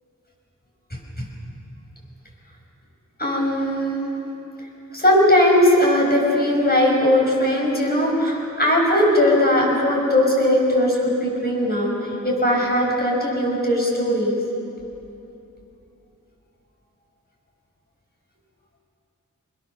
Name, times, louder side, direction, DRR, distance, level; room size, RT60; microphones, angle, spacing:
voice 1, 3.2-4.0 4.9-11.9 12.2-14.4, left 1 dB, 30° left, -2 dB, 6.0 m, -19 dB
24.5 x 21.0 x 6.6 m, 2.9 s
wide cardioid pair, 70°, 31 cm